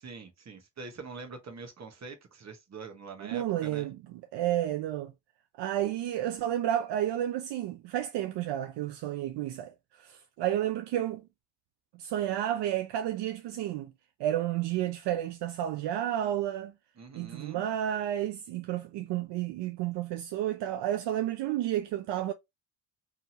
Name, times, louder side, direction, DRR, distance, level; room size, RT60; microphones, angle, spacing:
voice 1, 0.0-3.9 17.0-17.6, right 4 dB, 35° right, 1.1 m, -44 dB
voice 2, 3.2-4.0 4.3-5.1 5.6-11.2 12.0-13.9 14.2-16.7 17.2-22.3, right 12 dB, 65° right, 0.5 m, -31 dB
2.7 x 2.7 x 2.7 m
supercardioid pair, 65°, 45 cm